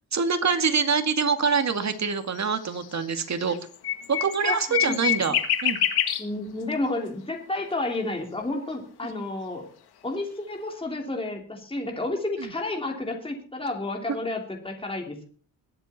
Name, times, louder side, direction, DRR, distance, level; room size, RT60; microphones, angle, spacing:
voice 1, 0.1-3.6 4.1-5.3 5.6-5.8, right 5 dB, 45° right, 7 dB, 2.1 m, -25 dB
sound 1, 1.4-2.0 2.4-6.2, left 10 dB, 85° left, 1.8 m, -26 dB
voice 2, 4.4-5.4 6.2-9.7 10.0-15.3, left 2 dB, 15° left, 1 dB, 3.2 m, -31 dB
21.5 x 8.0 x 4.3 m, 0.44 s
cardioid pair, 85°, 38 cm